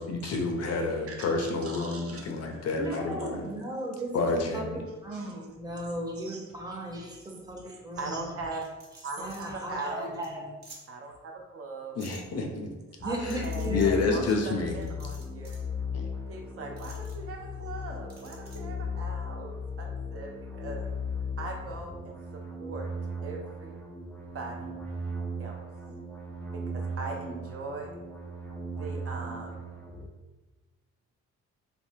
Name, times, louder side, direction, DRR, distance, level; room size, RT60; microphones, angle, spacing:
voice 1, 0.0-3.5 4.1-4.8 12.0-12.7 13.2-14.9 15.9-16.1, left 3 dB, 55° left, 3 dB, 0.5 m, -29 dB
voice 2, 0.7-2.6 3.2-3.3 5.1-5.4 6.2-6.8 7.2-8.7 9.0-10.1 10.9-12.0 13.0-15.6 16.3-20.8 21.4-22.9 23.2-23.8 24.3-24.8 25.4-25.6 26.5-28.0 28.7-29.6, right 3 dB, 50° right, 1 dB, 0.6 m, -40 dB
voice 3, 2.8-8.2 9.2-10.6 13.0-14.2, right 1 dB, 15° right, -2 dB, 0.7 m, -36 dB
sound 1, 8.6-9.4 9.8-9.9 10.2-10.3 10.6-10.8 12.0-12.2 13.3-13.9 14.8-15.7 16.8-17.1 18.1-18.6, right 2 dB, 35° right, 1.0 m, -50 dB
sound 2, 13.0-30.1, left 2 dB, 5° left, 0.4 m, -37 dB
3.3 x 2.1 x 2.6 m, 1.2 s
cardioid pair, 90°, 30 cm